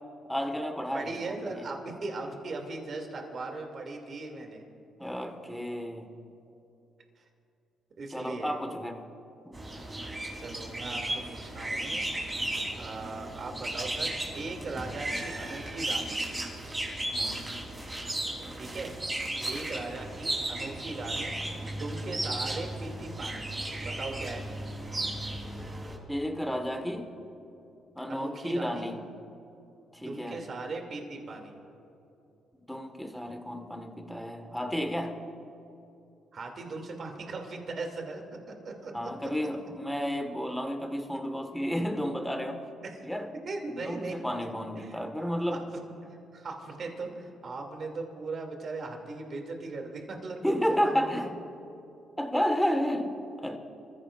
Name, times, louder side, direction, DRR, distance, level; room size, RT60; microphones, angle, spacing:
voice 1, 0.3-1.7 5.0-6.1 8.1-9.0 17.1-17.4 26.1-27.1 28.0-29.0 29.9-30.4 32.7-35.2 38.9-42.6 43.0-43.3 43.7-45.7 50.4-51.4 52.2-53.6, equal, 5° left, 5 dB, 1.6 m, -32 dB
voice 2, 0.9-4.6 8.0-8.5 10.4-12.0 12.8-16.2 18.5-18.9 19.5-21.4 21.7-23.5 23.8-24.5 28.1-28.9 30.0-31.6 36.3-39.1 42.8-43.1 43.4-44.2 44.8-45.6 46.3-51.3, right 3 dB, 50° right, 2 dB, 2.6 m, -39 dB
sound 1, 9.5-26.0, right 1 dB, 20° right, 3.7 m, -35 dB
27.0 x 15.0 x 2.5 m, 2.9 s
cardioid pair, 90°, 0 cm